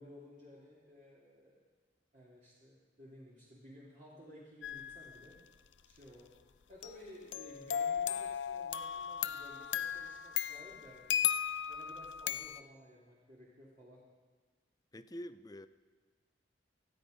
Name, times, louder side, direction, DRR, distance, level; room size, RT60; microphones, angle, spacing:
voice 1, 0.0-1.6 2.1-5.4 5.8-6.3 6.7-11.2 11.7-14.0, equal, 40° right, -6 dB, 2.7 m, -56 dB
sound 1, 4.6-5.1 6.8-12.6, left 9 dB, 75° left, 0.5 m, -36 dB
voice 2, 14.9-15.7, equal, 20° left, 12 dB, 0.6 m, -46 dB
28.5 x 9.6 x 5.1 m, 1.4 s
head